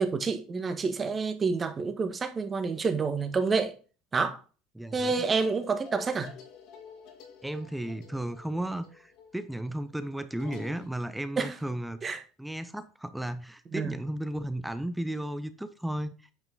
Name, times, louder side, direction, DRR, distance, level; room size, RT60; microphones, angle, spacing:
voice 1, 0.0-3.7 4.1-4.4 4.9-6.3 11.4-11.5 12.0-12.2 13.7-14.0, right 4 dB, 30° right, 1.5 m, -28 dB
voice 2, 4.7-5.1 7.4-12.0 12.4-16.1, right 1 dB, 5° right, 0.8 m, -34 dB
sound 1, 4.9-10.9, left 7 dB, 65° left, 2.2 m, -49 dB
9.0 x 5.1 x 4.0 m
supercardioid pair, 90°, 0 cm